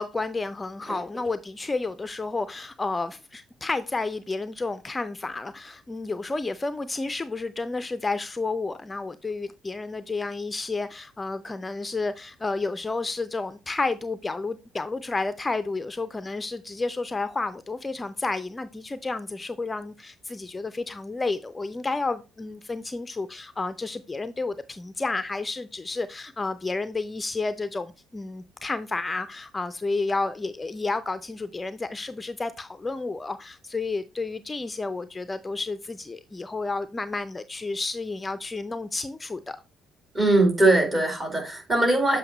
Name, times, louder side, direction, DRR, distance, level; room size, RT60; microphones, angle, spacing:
voice 1, 0.0-39.6, left 3 dB, 20° left, 0.5 m, -31 dB
voice 2, 40.1-42.2, right 2 dB, 30° right, 3.5 m, -21 dB
7.7 x 4.8 x 2.9 m
figure-of-eight pair, 50°, 0 cm